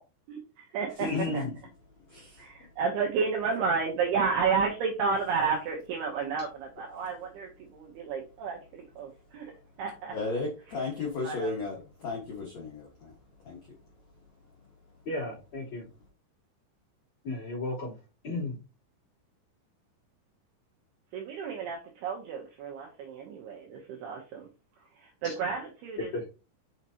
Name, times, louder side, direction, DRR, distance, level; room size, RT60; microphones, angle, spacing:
voice 1, 0.3-1.4 2.4-9.5 9.8-10.2 10.7-11.7 21.1-24.5 24.8-26.2, right 5 dB, 75° right, 2.5 m, -32 dB
voice 2, 1.0-1.5 15.0-15.9 17.2-18.0 18.2-18.6 25.2-25.3 26.1-26.2, left 2 dB, 30° left, 3.3 m, -33 dB
voice 3, 10.1-11.8 12.0-13.1 13.4-13.6, left 3 dB, 70° left, 1.6 m, -34 dB
6.5 x 6.2 x 2.8 m
omnidirectional pair, 5.6 m